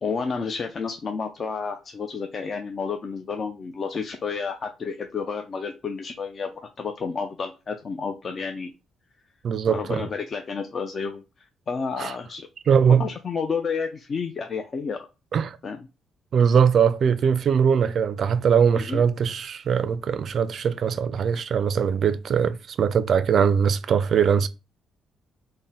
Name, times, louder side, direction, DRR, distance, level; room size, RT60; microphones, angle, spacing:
voice 1, 0.0-8.7 9.7-12.5 13.0-15.0 15.6-15.9 18.7-19.0, left 5 dB, 45° left, 0.4 m, -31 dB
voice 2, 9.4-10.0 12.0-12.1 12.7-13.1 15.3-15.6 16.3-24.5, right 7 dB, 55° right, 0.3 m, -21 dB
3.6 x 2.1 x 4.0 m
cardioid pair, 90°, 0 cm